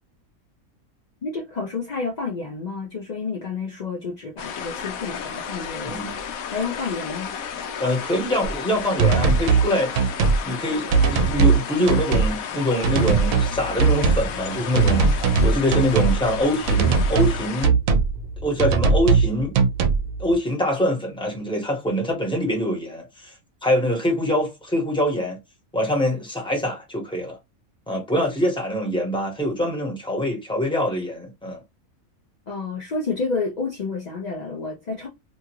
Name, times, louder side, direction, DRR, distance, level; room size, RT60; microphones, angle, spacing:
voice 1, 1.2-6.0 6.5-7.4 28.1-28.3 32.5-35.1, left 4 dB, 60° left, 0.4 m, -30 dB
sound 1, 4.4-17.7, left 7 dB, 80° left, 1.0 m, -33 dB
voice 2, 5.8-6.2 7.8-9.9 10.4-17.8 18.4-19.6 20.2-23.3 23.6-25.4 25.7-27.4 27.9-31.6, equal, 5° left, 0.9 m, -24 dB
sound 2, 8.4-8.5 9.0-9.7 10.0-10.4 10.9-11.6 11.9-12.3 12.8-13.5 13.8-14.3 14.7-16.2 16.7-17.3 17.6-18.1 18.6-19.3 19.5-20.0, right 5 dB, 75° right, 1.0 m, -19 dB
sound 3, 13.0-20.3, right 3 dB, 45° right, 0.8 m, -36 dB
2.9 x 2.4 x 2.9 m
omnidirectional pair, 1.5 m